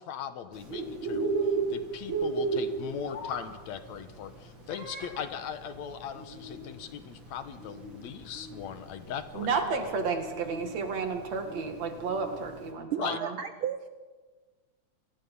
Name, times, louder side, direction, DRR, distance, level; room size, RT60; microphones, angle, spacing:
voice 1, 0.0-9.5 13.0-13.2, left 8 dB, 75° left, 10 dB, 2.4 m, -39 dB
Bird, 0.5-12.7, right 4 dB, 40° right, 3.5 m, -35 dB
sound 1, 2.8-3.5, left 6 dB, 90° left, 3.2 m, -39 dB
voice 2, 9.3-13.4, right 4 dB, 65° right, 6 dB, 3.2 m, -32 dB
voice 3, 12.9-13.9, right 9 dB, 85° right, 9 dB, 1.1 m, -33 dB
28.0 x 20.0 x 5.5 m, 1.4 s
omnidirectional pair, 3.4 m